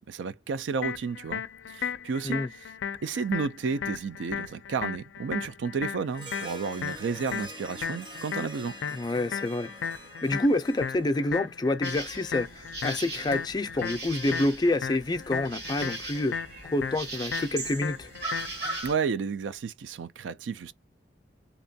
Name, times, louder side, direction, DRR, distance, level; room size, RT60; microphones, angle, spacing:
voice 1, 0.1-1.4 1.7-2.7 3.0-8.8 18.8-20.7, right 5 dB, 90° right, 0.4 m, -32 dB
sound 1, 0.8-18.8, left 7 dB, 90° left, 0.4 m, -36 dB
Harp, 6.1-11.8, right 1 dB, 25° right, 0.6 m, -46 dB
voice 2, 8.9-9.7 10.2-16.4 16.7-18.1, left 2 dB, 25° left, 0.4 m, -28 dB
sound 2, 11.8-18.9, right 2 dB, 60° right, 1.4 m, -39 dB
2.9 x 2.2 x 2.6 m
head